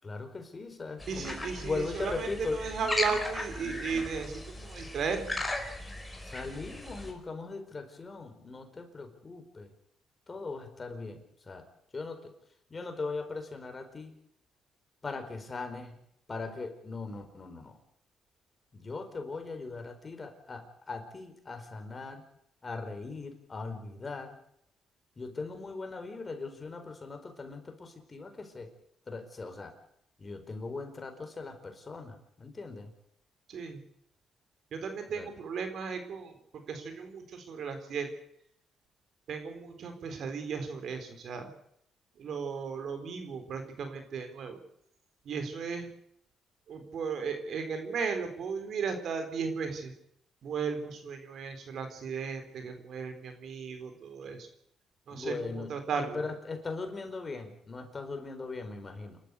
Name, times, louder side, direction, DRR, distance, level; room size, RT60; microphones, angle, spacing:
voice 1, 0.0-2.6 6.2-9.7 10.3-11.7 11.9-12.4 12.7-14.1 15.0-16.0 16.3-17.8 18.7-22.3 22.6-24.4 25.2-28.7 29.1-29.8 30.2-32.9 35.1-35.3 55.1-59.2, left 3 dB, 30° left, 6 dB, 4.6 m, -39 dB
sound 1, 1.0-7.1, left 1 dB, 10° left, 4.9 m, -37 dB
voice 2, 1.1-5.4 33.5-33.8 34.7-38.1 39.3-41.5 42.2-44.6 45.2-45.9 46.7-49.9 50.4-54.5 55.1-56.2, right 5 dB, 65° right, 7 dB, 3.9 m, -35 dB
28.5 x 12.5 x 8.2 m, 0.71 s
cardioid pair, 90°, 0 cm